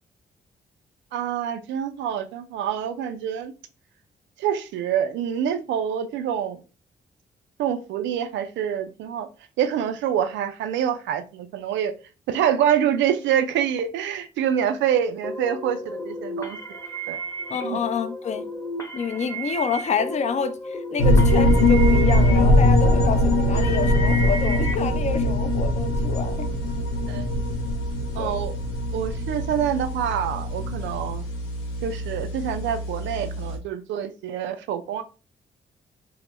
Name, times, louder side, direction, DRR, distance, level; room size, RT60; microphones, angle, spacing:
voice 1, 1.1-3.5 4.4-6.6 7.6-9.3 9.6-11.9 12.3-16.6 17.1-17.2 17.6-17.8 27.1-27.3 28.1-28.5 28.9-31.2 31.8-35.0, right 9 dB, 75° right, 0.4 m, -26 dB
sound 1, 15.2-24.7, right 1 dB, 15° left, 0.9 m, -33 dB
voice 2, 17.5-18.5 18.9-26.5 28.2-28.3, left 6 dB, 35° left, 0.4 m, -28 dB
sound 2, 21.0-33.6, left 1 dB, 85° left, 0.6 m, -22 dB
2.1 x 2.0 x 3.2 m
supercardioid pair, 50°, 19 cm